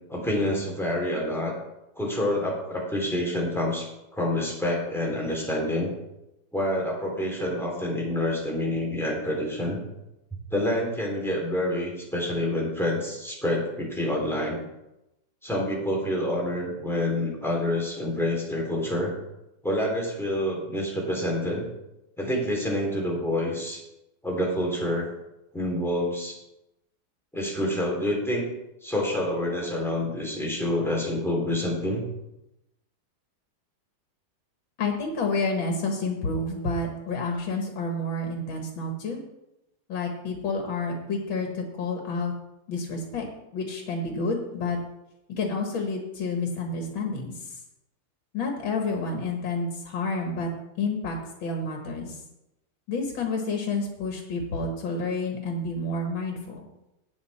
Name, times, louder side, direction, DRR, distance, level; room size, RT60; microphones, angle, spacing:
voice 1, 0.1-1.5 2.0-5.9 6.5-9.8 10.5-14.6 15.4-19.1 19.6-21.6 22.2-23.8 24.2-25.1 25.5-26.4 27.3-28.5 28.8-32.1, left 1 dB, ahead, -2 dB, 3.2 m, -27 dB
voice 2, 34.8-39.2 39.9-42.3 42.7-43.3 43.5-44.8 45.3-47.6 48.3-50.5 50.8-52.2 52.9-56.6, left 3 dB, 80° left, 2 dB, 2.3 m, -29 dB
17.5 x 6.1 x 4.3 m, 0.91 s
omnidirectional pair, 2.1 m